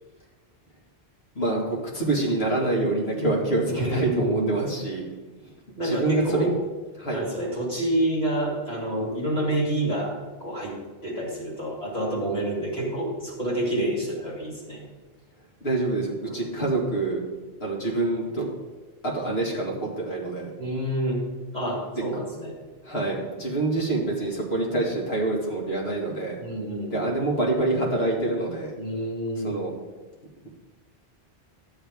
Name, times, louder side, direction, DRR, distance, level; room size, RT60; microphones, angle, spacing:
voice 1, 1.4-5.0 5.4-5.5 5.8-6.5 7.0-7.2 15.6-17.2 17.6-18.5 19.0-20.5 22.8-26.4 26.9-28.8 29.4-29.7, right 2 dB, 75° left, -3 dB, 2.3 m, -26 dB
voice 2, 3.7-4.6 5.8-6.6 7.1-14.8 16.2-16.4 20.6-21.2 21.5-22.5 26.4-27.1 28.8-29.6, right 1 dB, 40° left, -4 dB, 3.3 m, -28 dB
12.5 x 7.2 x 3.6 m, 1.3 s
omnidirectional pair, 1.1 m